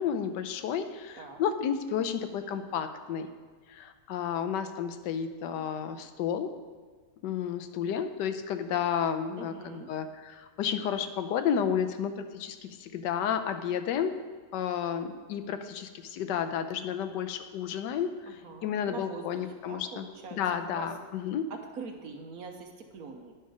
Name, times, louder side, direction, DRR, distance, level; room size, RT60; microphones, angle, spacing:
voice 1, 0.0-3.3 3.7-6.5 7.2-14.2 14.5-21.5, left 8 dB, 85° left, 8 dB, 1.3 m, -32 dB
voice 2, 9.4-9.9 18.3-20.9 21.5-23.3, right 4 dB, 60° right, 4 dB, 1.3 m, -44 dB
10.0 x 5.6 x 4.9 m, 1.5 s
omnidirectional pair, 1.8 m